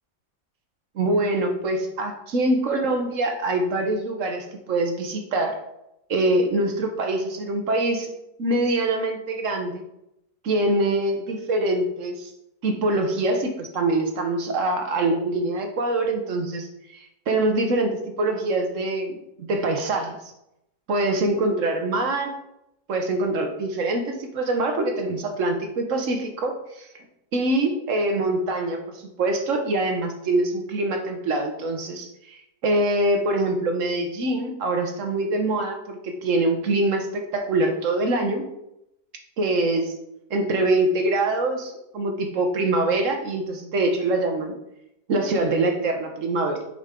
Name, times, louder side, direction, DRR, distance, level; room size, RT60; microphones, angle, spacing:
voice 1, 0.9-5.6 6.1-8.1 8.4-9.8 10.4-12.3 12.6-16.7 17.3-20.2 20.9-22.3 22.9-26.9 27.3-38.4 39.4-39.9 40.3-44.5 45.1-46.6, right 2 dB, 55° right, 4 dB, 1.1 m, -24 dB
7.3 x 5.5 x 3.7 m, 0.83 s
omnidirectional pair, 1.8 m